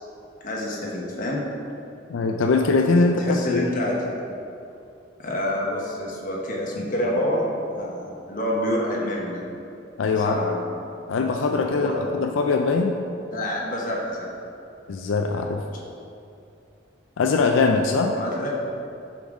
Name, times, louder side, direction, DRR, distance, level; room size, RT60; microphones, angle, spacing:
voice 1, 0.4-1.4 3.2-4.1 5.2-7.5 7.8-9.4 10.1-10.6 11.7-12.0 13.3-14.3 18.1-18.5, left 1 dB, 45° left, -3 dB, 1.1 m, -27 dB
voice 2, 2.1-3.6 10.0-10.4 11.1-12.9 14.9-15.6 17.2-18.1, left 4 dB, 90° left, 3 dB, 0.4 m, -21 dB
7.0 x 3.9 x 4.8 m, 2.7 s
head